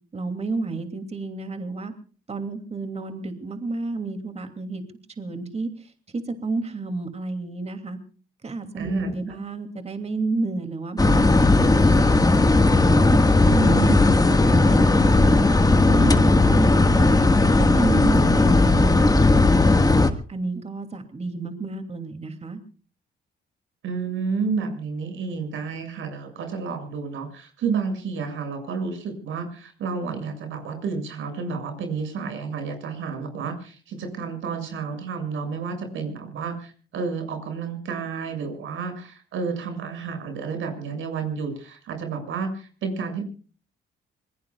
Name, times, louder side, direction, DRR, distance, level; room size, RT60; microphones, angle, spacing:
voice 1, 0.1-1.9 2.3-4.8 5.2-8.0 8.4-12.2 12.6-13.8 14.2-15.4 15.8-17.2 17.6-19.9 20.3-22.6, right 3 dB, 30° right, 7 dB, 2.7 m, -30 dB
voice 2, 8.8-9.1 13.4-14.0 23.8-43.2, right 5 dB, 80° right, 6 dB, 7.0 m, -30 dB
sound 1, 11.0-20.1, left 2 dB, 20° left, 1.7 m, -17 dB
26.0 x 21.5 x 2.4 m, 0.39 s
cardioid pair, 90°, 20 cm